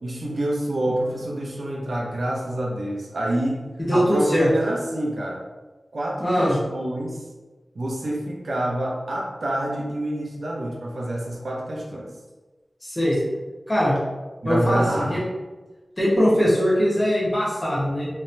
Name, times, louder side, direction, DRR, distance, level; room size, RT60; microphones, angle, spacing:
voice 1, 0.0-5.4 5.9-7.2 7.7-12.1 14.4-15.2, right 1 dB, 65° right, -1 dB, 0.6 m, -27 dB
voice 2, 3.8-4.5 6.2-6.6 12.8-13.2 13.7-14.0 14.4-15.2 16.0-18.1, equal, 30° left, -8 dB, 1.5 m, -21 dB
3.5 x 3.0 x 2.8 m, 1.2 s
wide cardioid pair, 95°, 0 cm